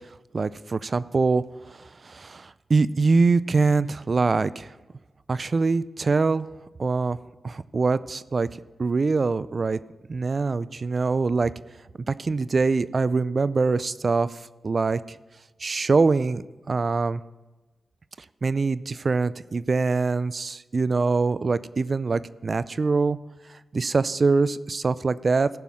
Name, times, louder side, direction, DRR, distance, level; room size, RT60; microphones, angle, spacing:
voice 1, 0.3-1.4 1.7-4.7 5.3-6.5 6.8-7.2 7.4-8.5 8.8-9.8 10.1-11.5 12.1-14.4 14.6-15.2 15.6-17.2 18.4-23.2 23.7-25.5, right 4 dB, 55° right, 17 dB, 0.4 m, -23 dB
15.0 x 5.5 x 6.3 m, 1.1 s
cardioid pair, 50°, 0 cm